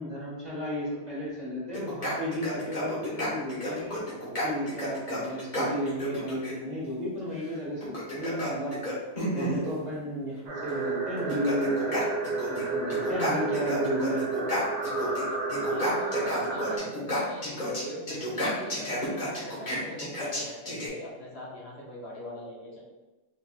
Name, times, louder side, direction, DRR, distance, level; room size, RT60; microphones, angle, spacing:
voice 1, 0.0-4.0 4.4-8.8 9.3-12.0 12.5-14.2, equal, 35° right, -8 dB, 1.6 m, -33 dB
sound 1, 1.7-6.5 7.8-9.6 10.7-10.8 11.2-12.6 12.9-15.2 15.5-20.9, equal, 40° left, 1.3 m, -32 dB
sound 2, 10.5-16.8, right 3 dB, 75° right, 1.1 m, -31 dB
voice 2, 15.5-22.8, equal, 65° left, -4 dB, 1.1 m, -41 dB
4.0 x 3.5 x 2.3 m, 1.1 s
omnidirectional pair, 1.2 m